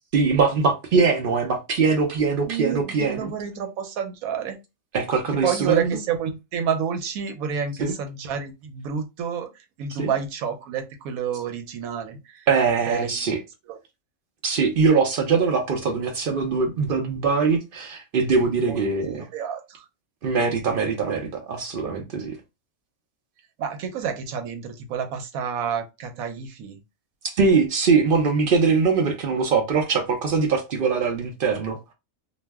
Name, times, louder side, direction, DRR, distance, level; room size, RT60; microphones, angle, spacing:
voice 1, 0.1-3.3 4.9-6.0 7.8-7.9 10.0-10.1 12.5-13.4 14.4-19.3 20.2-22.4 27.2-31.8, right 5 dB, 60° right, 0.6 m, -22 dB
voice 2, 2.4-4.6 5.4-12.5 12.9-13.2 13.7-13.8 18.7-18.8 19.3-19.9 23.6-26.8, right 7 dB, 90° right, 1.1 m, -29 dB
2.4 x 2.0 x 3.3 m
omnidirectional pair, 1.4 m